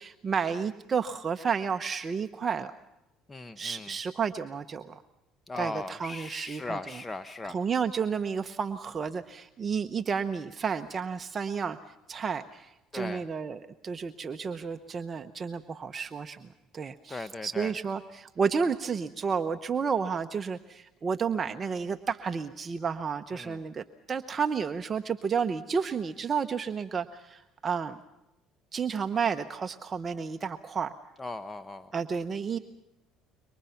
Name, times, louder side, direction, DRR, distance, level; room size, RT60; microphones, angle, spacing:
voice 1, 0.0-2.7 3.6-5.0 5.6-6.8 7.4-11.8 12.1-16.5 16.7-28.0 28.7-30.9 31.9-32.6, right 6 dB, 35° right, 8 dB, 0.9 m, -31 dB
voice 2, 3.3-3.9 5.5-7.6 12.9-13.2 17.1-17.7 23.3-23.6 31.2-31.9, left 3 dB, 20° left, 11 dB, 1.0 m, -38 dB
27.0 x 24.0 x 5.9 m, 0.95 s
supercardioid pair, 90°, 0 cm